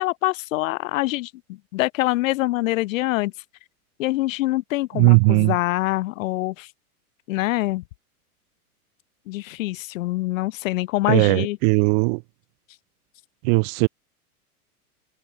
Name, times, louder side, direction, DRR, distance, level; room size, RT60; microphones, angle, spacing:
voice 1, 0.0-3.3 4.0-6.7 7.3-7.8 9.3-11.6, left 18 dB, 60° left, 0.6 m, -25 dB
voice 2, 4.9-5.5 11.1-12.2 13.4-13.9, right 39 dB, 35° right, 0.4 m, -18 dB
hypercardioid pair, 100°, 46 cm